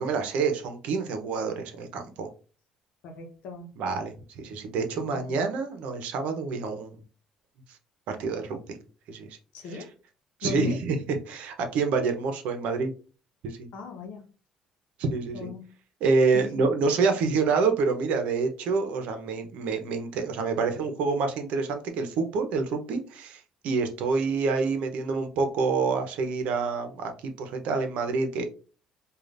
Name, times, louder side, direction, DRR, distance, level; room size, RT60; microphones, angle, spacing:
voice 1, 0.0-2.3 3.8-7.0 8.1-8.8 9.1-9.3 9.7-9.8 10.4-12.9 13.4-13.7 15.0-15.5 16.0-28.5, right 4 dB, 75° right, 6 dB, 0.8 m, -27 dB
voice 2, 3.0-3.7 4.9-5.4 9.5-9.9 10.4-10.8 13.7-14.3 15.3-15.7 16.3-16.5, left 4 dB, 75° left, 4 dB, 0.9 m, -38 dB
4.9 x 2.4 x 2.5 m, 0.36 s
cardioid pair, 90°, 2 cm